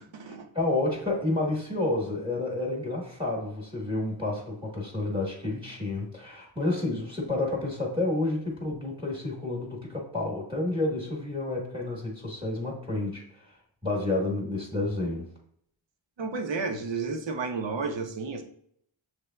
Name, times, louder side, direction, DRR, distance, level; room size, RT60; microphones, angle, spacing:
voice 1, 0.0-0.5 16.2-18.4, right 4 dB, 65° right, 5 dB, 0.8 m, -32 dB
voice 2, 0.5-13.6 13.8-15.3, left 2 dB, 10° right, -2 dB, 1.2 m, -30 dB
6.5 x 3.3 x 2.2 m, 0.67 s
wide cardioid pair, 90°, 48 cm